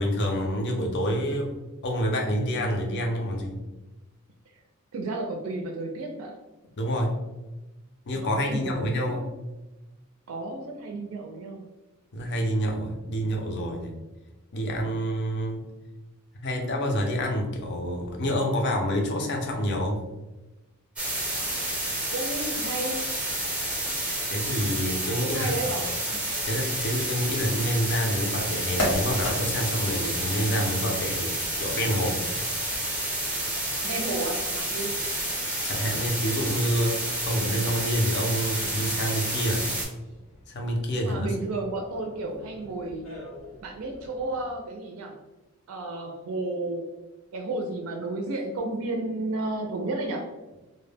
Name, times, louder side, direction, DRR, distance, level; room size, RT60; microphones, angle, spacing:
voice 1, 0.0-1.5 1.8-3.6 6.8-7.2 8.1-9.3 12.1-13.9 14.5-15.6 16.4-20.1 24.3-25.7 26.4-32.2 35.6-39.6 40.5-41.3, equal, 50° left, 2 dB, 0.5 m, -27 dB
voice 2, 4.9-6.4 8.1-9.2 10.3-11.6 22.1-23.0 25.2-26.2 33.8-34.9 40.9-43.1 43.6-45.1 45.7-46.8 47.3-50.2, right 2 dB, 70° right, 2 dB, 0.4 m, -32 dB
sound 1, 21.0-39.8, right 1 dB, 5° right, 0.6 m, -30 dB
sound 2, 27.7-44.6, left 1 dB, 85° left, 1.0 m, -40 dB
2.1 x 2.1 x 3.2 m, 1.1 s
head